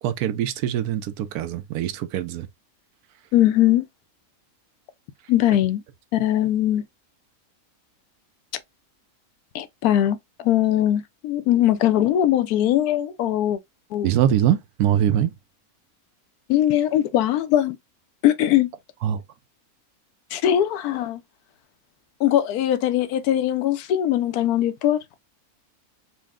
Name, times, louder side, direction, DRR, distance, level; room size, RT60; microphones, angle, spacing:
voice 1, 0.0-2.5 14.0-15.3 19.0-19.2, right 10 dB, 85° right, 1.1 m, -23 dB
voice 2, 3.3-3.9 5.3-5.8 6.1-6.8 9.5-10.2 10.4-13.6 13.9-14.1 16.5-17.8 18.2-18.7 20.3-21.2 22.2-25.0, left 12 dB, 85° left, 1.1 m, -20 dB
4.4 x 2.1 x 3.5 m
omnidirectional pair, 1.6 m